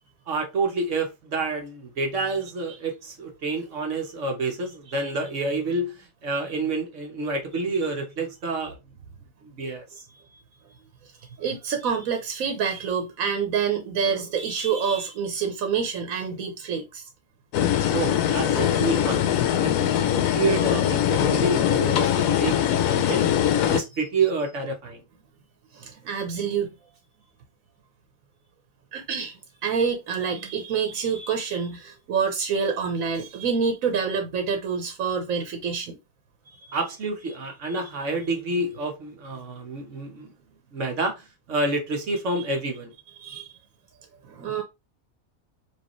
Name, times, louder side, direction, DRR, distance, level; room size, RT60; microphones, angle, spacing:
voice 1, 0.3-8.8 9.4-10.0 17.9-22.6 22.9-23.3 23.7-25.0 36.7-40.3 40.7-42.9, right 3 dB, 65° right, 1.3 m, -28 dB
voice 2, 11.4-17.0 23.6-23.7 25.7-26.7 28.9-36.0 36.5-36.6 43.2-43.5 44.3-44.6, right 6 dB, 85° right, 1.2 m, -27 dB
sound 1, 17.5-23.8, left 10 dB, 85° left, 1.0 m, -22 dB
4.6 x 2.5 x 3.0 m
omnidirectional pair, 1.4 m